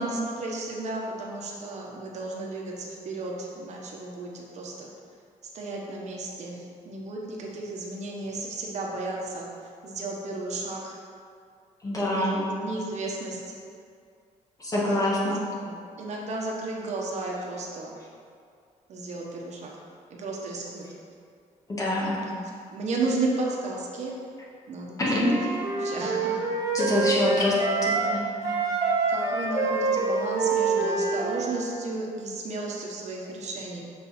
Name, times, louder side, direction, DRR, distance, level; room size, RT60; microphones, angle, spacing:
voice 1, 0.0-4.9 5.5-9.5 9.8-11.0 12.1-13.4 14.8-15.3 15.6-17.9 18.9-19.7 20.1-20.8 22.0-22.4 22.7-24.1 24.7-25.4 25.7-26.4 27.2-27.3 28.4-28.6 29.1-33.8, right 2 dB, 60° right, -2 dB, 1.2 m, -33 dB
voice 2, 11.8-12.4 14.6-15.4 21.8-22.2 25.0-25.3 26.7-27.5 27.8-28.2, left 1 dB, 25° left, -5 dB, 1.7 m, -25 dB
Wind instrument woodwind instrument, 25.2-28.1 28.4-31.6, right 3 dB, 25° right, 1.4 m, -26 dB
7.4 x 5.4 x 4.3 m, 2.3 s
cardioid pair, 125°, 13 cm